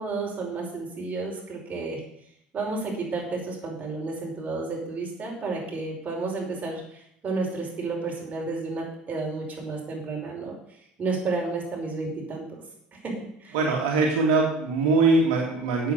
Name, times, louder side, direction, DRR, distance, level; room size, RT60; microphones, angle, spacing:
voice 1, 0.0-2.0 2.5-10.5 11.0-12.6 13.0-13.1 13.4-13.6, right 3 dB, 35° right, -2 dB, 5.6 m, -31 dB
voice 2, 13.5-15.9, right 3 dB, 80° right, -1 dB, 2.4 m, -22 dB
8.3 x 7.7 x 8.1 m, 0.73 s
hypercardioid pair, 80°, 4 cm